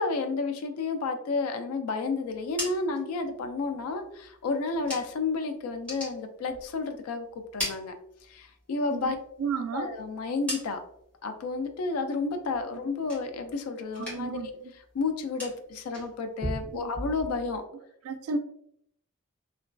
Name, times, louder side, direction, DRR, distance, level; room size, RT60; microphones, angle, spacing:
voice 1, 0.0-7.9 8.2-9.2 9.7-10.8 11.2-14.6 14.9-17.6, left 3 dB, 90° left, 6 dB, 0.3 m, -31 dB
sound 1, 2.3-5.4 5.7-7.0 7.3-8.6 9.0-11.1 11.5-12.0 12.3-13.6 13.9-14.5 14.7-17.6, equal, 5° left, 1.3 m, -40 dB
voice 2, 8.9-9.9 14.0-14.5 16.7-16.9 18.0-18.4, right 4 dB, 85° right, 11 dB, 0.3 m, -33 dB
2.9 x 2.2 x 2.5 m, 0.72 s
head